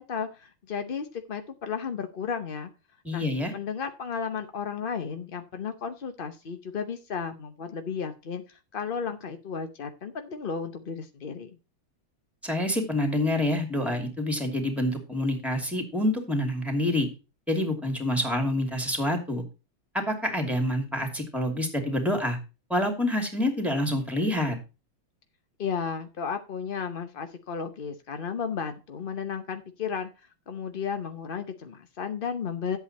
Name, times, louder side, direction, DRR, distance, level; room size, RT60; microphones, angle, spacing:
voice 1, 0.0-2.7 3.1-3.3 3.5-11.6 25.6-32.8, left 6 dB, 55° left, 8 dB, 0.6 m, -34 dB
voice 2, 3.0-3.5 12.4-17.1 17.5-19.4 19.9-22.4 22.7-24.6, left 1 dB, ahead, 4 dB, 2.5 m, -27 dB
11.0 x 8.2 x 4.2 m, 0.30 s
omnidirectional pair, 2.2 m